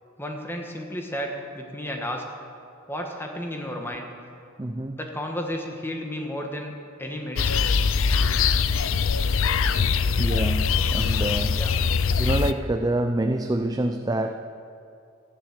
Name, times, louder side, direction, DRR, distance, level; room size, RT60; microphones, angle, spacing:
voice 1, 0.2-2.3 2.9-4.1 5.0-6.7 7.0-7.7 11.5-11.8, equal, 10° left, 2 dB, 1.5 m, -32 dB
voice 2, 4.6-5.0 10.2-11.7 12.2-14.3, right 1 dB, 20° right, 6 dB, 0.4 m, -26 dB
sound 1, 7.4-12.5, left 5 dB, 65° left, 0.5 m, -22 dB
14.5 x 10.0 x 7.4 m, 2.6 s
head